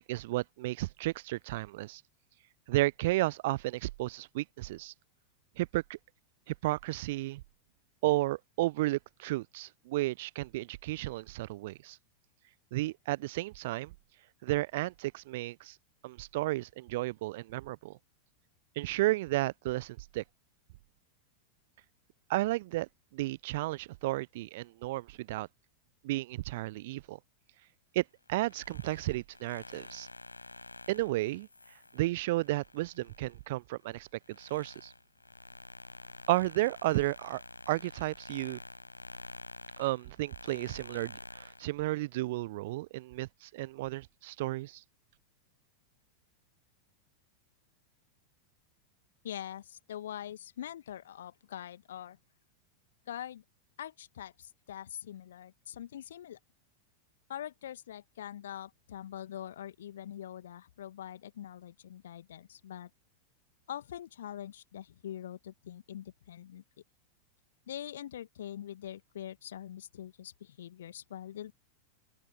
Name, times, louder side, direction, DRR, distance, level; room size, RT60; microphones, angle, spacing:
voice 1, 0.0-2.0 2.7-4.9 5.6-6.0 6.5-7.4 8.0-12.0 12.7-13.9 14.4-15.7 16.0-18.0 18.8-20.2 22.3-25.5 26.0-27.2 27.9-30.1 30.9-31.5 31.9-34.1 34.4-34.9 36.3-37.4 37.7-38.6 39.8-44.8, right 18 dB, 50° right, 0.8 m, -33 dB
sound 1, 28.3-33.4 33.8-41.7, left 2 dB, 80° left, 5.7 m, -49 dB
voice 2, 49.2-52.2 53.1-53.4 53.8-56.4 57.3-62.9 63.7-66.6 67.7-71.5, left 11 dB, 60° left, 1.9 m, -43 dB
open air
figure-of-eight pair, 90°, 0 cm